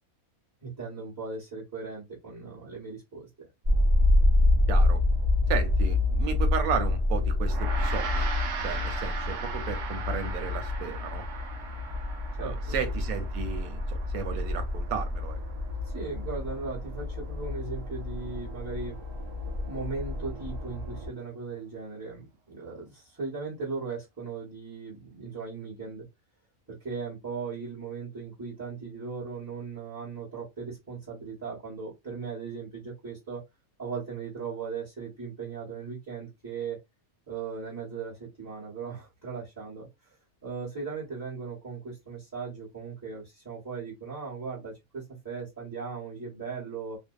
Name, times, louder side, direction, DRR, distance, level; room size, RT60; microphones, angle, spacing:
voice 1, 0.6-3.5 12.4-12.6 15.8-19.0 19.6-26.1 26.7-33.4 33.8-36.8 37.3-40.2 40.4-47.0, right 5 dB, 15° right, 0.9 m, -38 dB
sound 1, 3.6-21.1, left 2 dB, 40° right, 0.6 m, -28 dB
voice 2, 4.7-5.0 5.5-8.3 8.6-11.2 12.4-15.4, right 6 dB, 90° right, 1.1 m, -34 dB
Gong, 7.5-17.0, right 5 dB, 70° right, 0.9 m, -39 dB
2.6 x 2.1 x 2.3 m
omnidirectional pair, 1.5 m